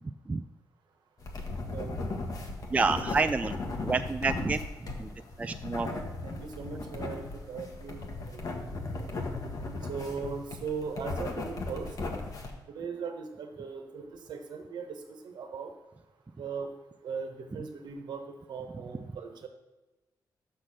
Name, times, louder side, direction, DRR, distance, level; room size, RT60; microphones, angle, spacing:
sound 1, 1.2-12.5, left 2 dB, 55° left, 1.4 m, -36 dB
voice 1, 1.7-2.0 5.8-8.0 8.3-9.3 9.9-11.9 12.7-14.0 14.3-15.7 16.4-16.7 17.0-19.5, right 5 dB, 75° right, 5 dB, 1.3 m, -39 dB
voice 2, 2.7-4.6 5.0-5.1 5.4-5.9, right 4 dB, 20° right, 9 dB, 0.3 m, -28 dB
6.4 x 5.7 x 6.5 m, 1.1 s
cardioid pair, 95°, 7 cm